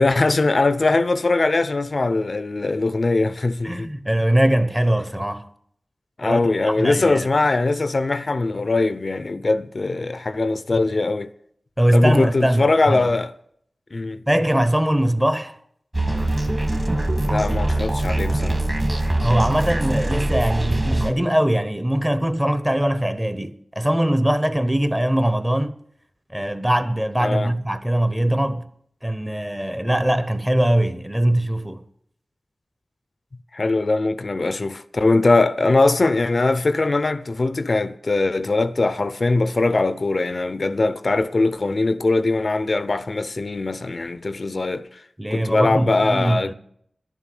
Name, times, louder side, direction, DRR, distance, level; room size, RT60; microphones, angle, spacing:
voice 1, 0.0-3.9 6.2-11.3 11.9-13.3 13.9-14.2 17.3-18.6 27.2-27.5 33.5-45.0 45.3-46.5, left 3 dB, 50° left, 0.5 m, -21 dB
voice 2, 3.6-5.5 6.2-7.3 11.8-13.1 14.3-15.6 19.2-25.7 26.3-28.7 29.0-31.8 45.2-46.5, right 1 dB, 10° right, 0.9 m, -21 dB
sound 1, 15.9-21.1, right 1 dB, 30° right, 1.7 m, -22 dB
11.5 x 7.2 x 9.2 m
wide cardioid pair, 75°, 0 cm